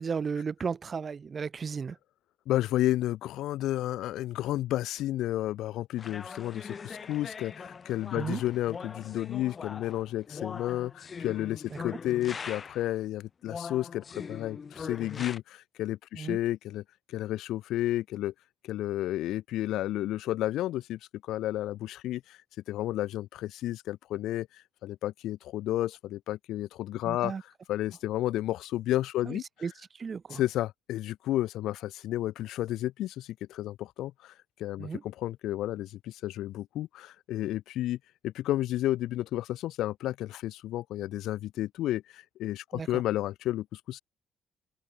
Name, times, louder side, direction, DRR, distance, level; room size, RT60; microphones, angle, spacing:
voice 1, 0.0-2.0 8.1-8.4 11.7-11.8 16.1-16.4 27.0-27.4 29.3-30.4 34.8-35.0 42.7-43.0, right 5 dB, 40° right, 0.7 m, -35 dB
voice 2, 2.5-16.8 17.1-18.3 18.6-22.4 22.7-24.5 24.8-27.3 27.7-29.4 30.3-34.3 34.6-38.0 38.2-44.0, left 14 dB, 85° left, 0.7 m, -32 dB
sound 1, 6.0-12.9 13.5-15.4, left 5 dB, 40° left, 7.0 m, -41 dB
open air
cardioid pair, 90°, 0 cm